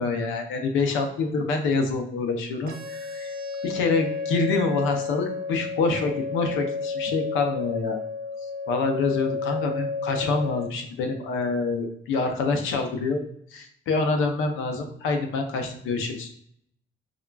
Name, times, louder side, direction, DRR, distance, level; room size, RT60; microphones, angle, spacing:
voice 1, 0.0-3.3 3.6-8.0 8.7-13.2 13.5-16.3, left 3 dB, 90° left, 4 dB, 0.6 m, -26 dB
sound 1, 2.7-10.7, left 4 dB, 50° right, 0.7 m, -31 dB
3.6 x 2.2 x 2.3 m, 0.68 s
cardioid pair, 90°, 20 cm